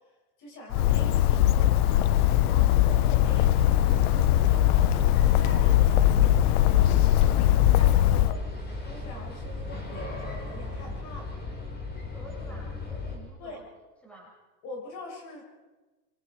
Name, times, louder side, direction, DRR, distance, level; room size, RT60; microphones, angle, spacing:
voice 1, 0.4-2.1 2.4-3.6 4.4-6.1 6.8-8.5 8.8-11.4 13.4-13.6 14.6-15.4, left 2 dB, 40° left, 0 dB, 6.7 m, -44 dB
Bird, 0.7-8.3, left 13 dB, 75° left, 0.9 m, -21 dB
voice 2, 2.2-2.5 12.1-13.7 14.0-14.4, right 1 dB, 5° left, -3 dB, 6.7 m, -49 dB
sound 1, 2.9-13.2, left 3 dB, 20° left, 4.7 m, -36 dB
sound 2, 3.8-11.0, right 8 dB, 55° right, 4.6 m, -49 dB
28.0 x 24.0 x 4.7 m, 1.3 s
supercardioid pair, 135°, 45 cm